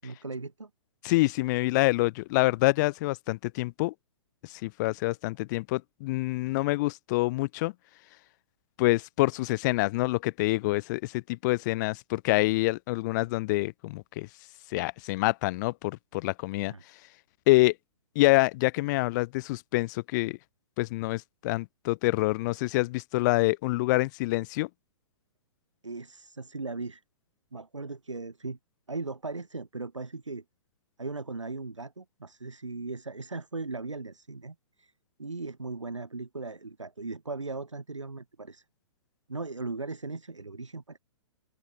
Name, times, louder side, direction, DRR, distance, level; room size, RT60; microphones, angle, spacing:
voice 1, 0.0-0.7 16.7-16.8 25.8-27.0 27.5-28.6 28.9-30.4 31.0-34.9 35.2-38.6 39.3-41.0, right 3 dB, 80° right, 5.6 m, -38 dB
voice 2, 1.0-3.9 4.4-7.7 8.8-14.3 14.7-16.7 17.5-17.7 18.1-20.4 20.8-24.7, left 21 dB, 40° left, 3.2 m, -26 dB
open air
figure-of-eight pair, 115°, 16 cm